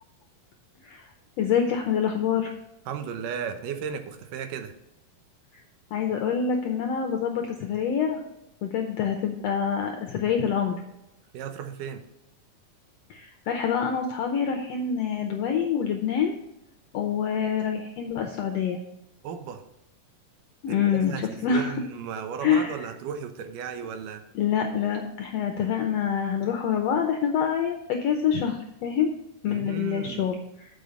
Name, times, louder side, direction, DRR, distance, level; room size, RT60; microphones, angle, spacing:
voice 1, 1.4-2.5 5.9-8.2 8.6-10.8 13.1-16.3 16.9-18.8 20.6-21.1 21.4-21.7 22.4-22.7 24.3-29.1 29.4-30.4, left 7 dB, 80° left, 4 dB, 1.4 m, -26 dB
voice 2, 2.9-4.7 11.3-12.1 19.2-19.6 20.7-24.2 29.5-30.3, right 7 dB, 80° right, 7 dB, 2.4 m, -35 dB
7.7 x 5.1 x 6.8 m, 0.86 s
omnidirectional pair, 3.8 m